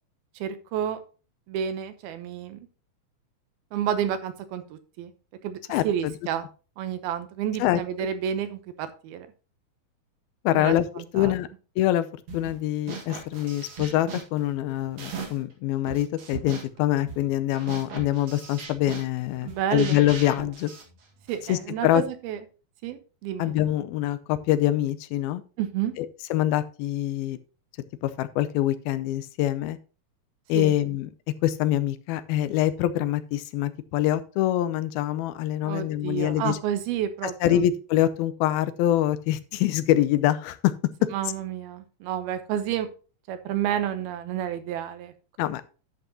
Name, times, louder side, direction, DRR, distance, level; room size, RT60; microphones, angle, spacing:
voice 1, 0.4-1.0 1.5-2.6 3.7-5.1 5.4-6.5 6.8-9.3 10.5-11.3 19.4-20.0 21.3-22.4 22.8-23.5 25.6-25.9 30.5-30.7 35.6-37.7 41.1-42.9 43.3-45.1, right 9 dB, 90° right, 9 dB, 2.9 m, -30 dB
voice 2, 5.7-6.1 7.6-7.8 10.4-11.5 11.8-12.1 12.3-20.7 21.5-22.0 23.4-25.4 26.0-27.4 28.0-29.8 30.5-31.1 31.4-36.6 37.4-40.7 41.0-41.1 45.4-45.6, left 13 dB, 85° left, 13 dB, 2.5 m, -25 dB
sound 1, 12.3-12.6 12.9-15.5 15.9-21.6, right 5 dB, 55° right, 2.7 m, -39 dB
11.0 x 7.9 x 2.9 m, 0.34 s
omnidirectional pair, 4.3 m